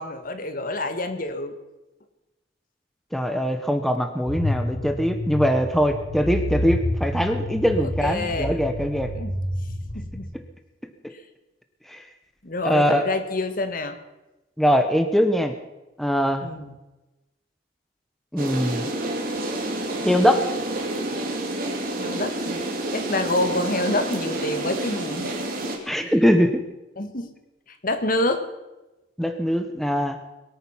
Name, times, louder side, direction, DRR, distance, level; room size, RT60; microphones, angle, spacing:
voice 1, 0.0-1.5 8.0-8.6 9.1-9.3 9.9-10.3 12.4-14.0 16.4-16.7 22.0-22.6 22.9-25.3 25.9-26.1 27.0-27.3 27.8-28.4, left 2 dB, 50° left, 9 dB, 1.5 m, -27 dB
voice 2, 3.1-9.1 11.9-12.0 12.6-13.0 14.6-15.5 16.0-16.5 18.3-18.8 20.0-20.4 25.9-26.6 29.2-30.2, equal, ahead, 6 dB, 1.0 m, -22 dB
sound 1, 4.3-10.2, left 1 dB, 70° left, 2.4 m, -29 dB
sound 2, 18.4-25.8, right 1 dB, 55° right, 2.8 m, -29 dB
22.5 x 8.9 x 5.7 m, 1.0 s
head